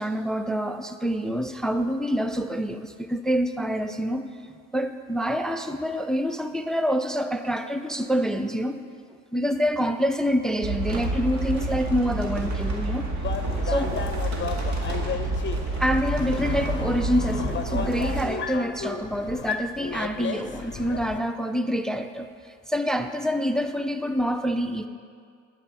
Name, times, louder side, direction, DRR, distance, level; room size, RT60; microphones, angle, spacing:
voice 1, 0.0-8.9 9.3-13.1 13.6-13.9 15.8-24.9, equal, ahead, 9 dB, 0.4 m, -26 dB
sound 1, 10.6-18.2, right 2 dB, 65° right, 1.9 m, -28 dB
sound 2, 13.2-21.2, left 6 dB, 40° left, 0.7 m, -34 dB
11.5 x 5.5 x 7.7 m, 2.2 s
cardioid pair, 90°, 30 cm